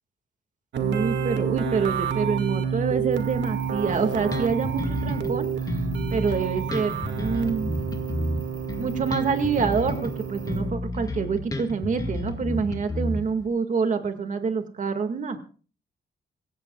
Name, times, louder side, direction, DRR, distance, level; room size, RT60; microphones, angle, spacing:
sound 1, 0.7-10.7, right 7 dB, 80° right, 2.1 m, -29 dB
voice 1, 0.8-5.8 6.1-7.7 8.8-15.4, right 5 dB, 45° right, 7 dB, 2.0 m, -27 dB
sound 2, 3.1-10.6, right 1 dB, 30° right, 6.7 m, -45 dB
Bass guitar, 3.9-5.3 5.7-10.1 10.5-13.5, left 1 dB, 20° left, 1.9 m, -31 dB
26.0 x 15.0 x 2.4 m, 0.38 s
wide cardioid pair, 160°, 18 cm